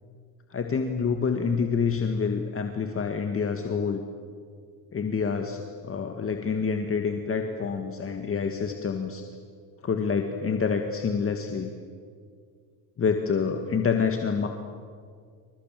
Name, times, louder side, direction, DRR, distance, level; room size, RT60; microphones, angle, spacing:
voice 1, 0.5-4.0 4.9-9.2 9.8-11.7 13.0-14.5, left 5 dB, 30° left, 4 dB, 2.0 m, -27 dB
28.0 x 25.0 x 7.8 m, 2.1 s
cardioid pair, 115°, 42 cm